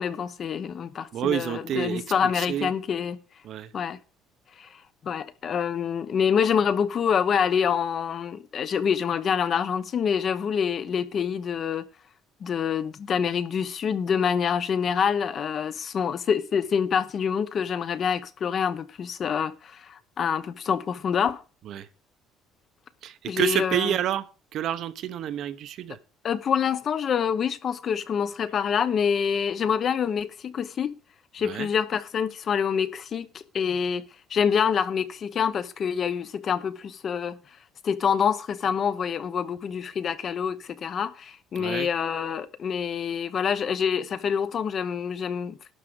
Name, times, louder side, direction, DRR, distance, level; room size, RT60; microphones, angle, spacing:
voice 1, 0.0-3.2 3.7-4.0 4.6-4.7 5.0-11.8 12.4-21.4 23.3-23.9 26.2-30.9 31.3-33.3 33.5-34.0 34.3-37.4 37.8-45.7, left 7 dB, 35° left, 0.8 m, -26 dB
voice 2, 1.1-2.7 3.4-3.7 21.6-21.9 23.0-24.3 24.5-26.0 31.4-31.7 41.6-41.9, right 11 dB, 50° right, 0.8 m, -29 dB
12.0 x 5.0 x 7.8 m
cardioid pair, 165°, 0 cm